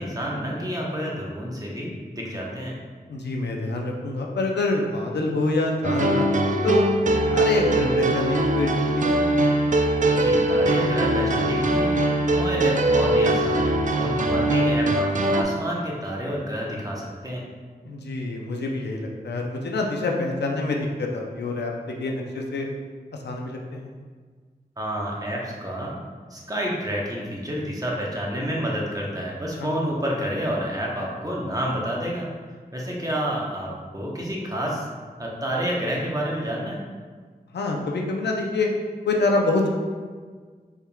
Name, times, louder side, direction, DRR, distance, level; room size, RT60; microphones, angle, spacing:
voice 1, 0.0-2.7 10.2-11.9 12.3-13.7 14.0-17.4 24.8-25.9 26.3-32.3 32.7-34.9 35.2-36.8, equal, 20° right, -3 dB, 0.9 m, -29 dB
voice 2, 3.1-6.8 7.3-9.2 14.3-14.5 17.8-22.7 23.2-23.9 29.6-29.7 37.5-38.7 39.0-39.7, left 2 dB, 90° left, 0 dB, 0.5 m, -26 dB
sound 1, 5.8-15.4, right 1 dB, 50° right, 0.4 m, -21 dB
4.3 x 3.5 x 2.3 m, 1.5 s
wide cardioid pair, 50°, 17 cm